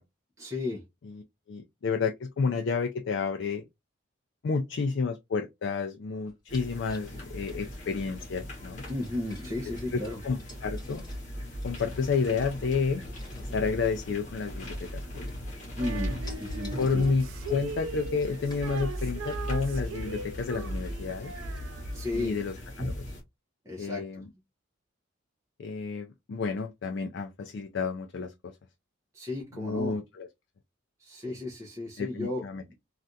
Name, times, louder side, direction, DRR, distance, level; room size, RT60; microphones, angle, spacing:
voice 1, 0.4-0.8 8.9-10.2 15.8-17.0 21.9-22.4 23.6-24.0 29.1-29.9 31.0-32.4, left 2 dB, 15° right, 0.8 m, -34 dB
voice 2, 1.5-3.6 4.4-8.8 9.9-11.0 11.6-13.0 13.4-15.3 15.9-16.0 16.8-21.3 22.1-23.0 23.8-24.2 25.6-28.5 29.5-30.3 31.3-31.4 32.0-32.6, left 4 dB, 60° left, 0.3 m, -31 dB
sound 1, 6.3-8.3 8.8-11.4 11.6-12.4 13.0-13.6 14.3-15.0 15.3-15.7 16.0-19.5 20.0-20.1 20.4-20.5 20.8-21.6 22.0-22.1, left 1 dB, 20° left, 1.6 m, -48 dB
sound 2, 6.5-23.2, equal, 35° left, 1.0 m, -38 dB
Female singing, 15.8-22.3, right 5 dB, 80° right, 0.4 m, -40 dB
3.3 x 2.4 x 2.6 m
head